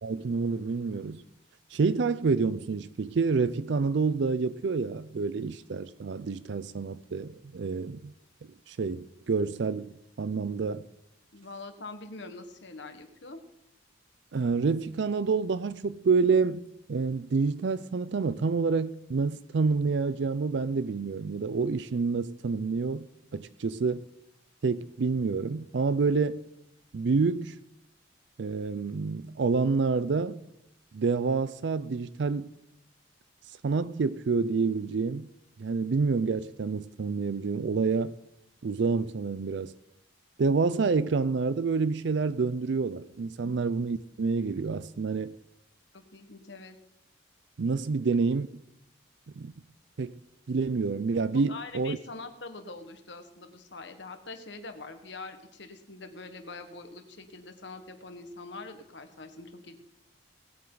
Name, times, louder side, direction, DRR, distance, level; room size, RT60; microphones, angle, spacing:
voice 1, 0.0-1.2 1.7-8.1 8.7-10.9 14.3-23.1 23.3-24.1 24.6-26.4 26.9-27.6 28.4-30.4 30.9-32.5 33.6-35.3 35.6-38.1 38.6-39.7 40.4-45.4 47.6-48.5 49.4-49.5 50.0-50.2 50.5-52.0, right 4 dB, 60° right, 0.4 m, -28 dB
voice 2, 11.3-13.4 43.4-43.5 45.9-46.8 51.5-59.8, left 3 dB, 60° left, 1.5 m, -44 dB
19.5 x 8.9 x 3.9 m
head